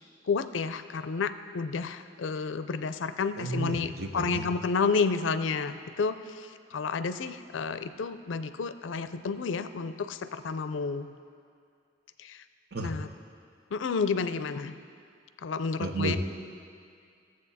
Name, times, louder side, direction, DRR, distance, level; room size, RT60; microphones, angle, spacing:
voice 1, 0.2-11.1 12.2-12.4 12.8-13.1 13.7-14.7 15.4-16.2, left 5 dB, 85° left, 12 dB, 0.4 m, -31 dB
voice 2, 3.4-4.4 12.7-12.9 15.8-16.2, right 2 dB, 60° right, 4 dB, 0.9 m, -32 dB
14.5 x 7.7 x 4.1 m, 2.3 s
head